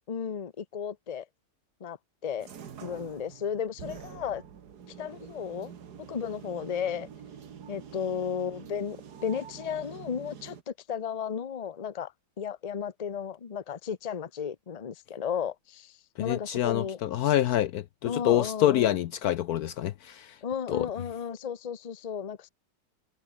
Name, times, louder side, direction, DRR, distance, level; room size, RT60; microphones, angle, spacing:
voice 1, 0.1-1.3 1.8-2.0 2.2-2.5 2.8-4.4 5.0-5.7 6.0-7.1 7.7-9.0 9.2-17.0 18.1-19.0 20.4-22.5, left 7 dB, 30° left, 0.7 m, -34 dB
sound 1, 2.4-10.6, right 7 dB, 65° right, 2.0 m, -46 dB
voice 2, 16.2-20.3 20.7-20.9, left 12 dB, 70° left, 1.0 m, -26 dB
omnidirectional pair, 1.9 m